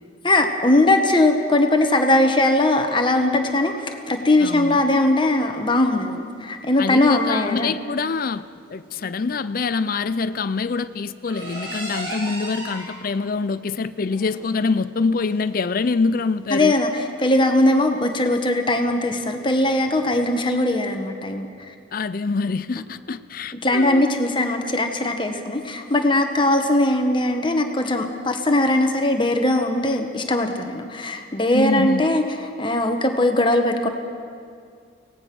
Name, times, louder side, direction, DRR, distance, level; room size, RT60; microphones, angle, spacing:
voice 1, 0.2-7.7 16.5-21.5 23.6-32.2 32.6-33.9, left 1 dB, 25° left, 5 dB, 1.3 m, -20 dB
sound 1, 2.4-21.0, right 1 dB, 50° right, 7.1 m, -41 dB
voice 2, 4.4-4.8 6.8-8.4 8.7-16.8 21.9-24.0 31.5-32.1, left 4 dB, 45° left, 12 dB, 0.4 m, -25 dB
24.0 x 18.0 x 6.1 m, 2.3 s
head